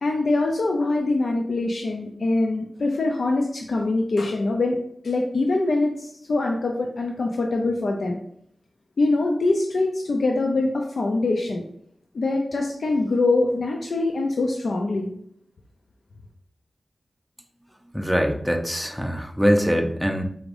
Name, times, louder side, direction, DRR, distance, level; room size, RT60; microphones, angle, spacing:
voice 1, 0.0-4.8 5.0-8.2 9.0-11.6 12.1-15.1, left 2 dB, 80° left, 1 dB, 0.5 m, -23 dB
voice 2, 17.9-20.2, equal, ahead, 3 dB, 0.6 m, -23 dB
4.9 x 3.2 x 2.6 m, 0.67 s
wide cardioid pair, 80°, 0 cm